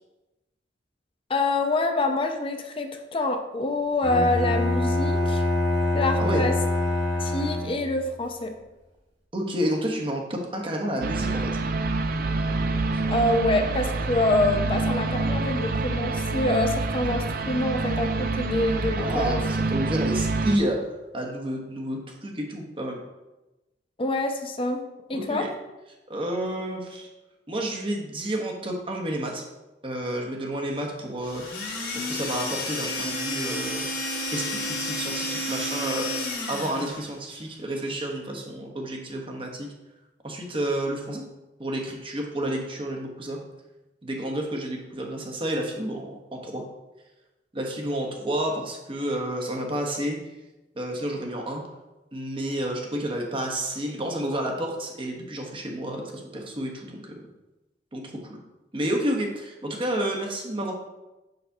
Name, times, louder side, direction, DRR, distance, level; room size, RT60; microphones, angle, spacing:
voice 1, 1.3-5.4 5.9-6.6 7.2-8.6 13.1-19.4 24.0-24.8 25.1-25.5, left 2 dB, 30° left, 5 dB, 0.5 m, -26 dB
Bowed string instrument, 4.0-8.0, left 1 dB, 70° right, 2.1 m, -25 dB
voice 2, 9.3-11.5 19.0-20.8 21.1-23.0 25.1-25.5 26.1-27.1 27.5-29.4 29.8-31.4 31.9-33.8 34.3-36.2 36.5-39.7 40.2-41.2 41.6-43.4 44.0-46.6 47.5-50.2 50.8-51.6 52.1-57.1 57.9-58.4 58.7-60.7, right 1 dB, 30° right, 1 dB, 1.0 m, -30 dB
sound 1, 11.0-20.6, right 3 dB, 55° right, 0.4 m, -27 dB
sound 2, 31.2-37.1, left 1 dB, 60° left, 1.7 m, -31 dB
6.6 x 5.8 x 2.7 m, 1.0 s
head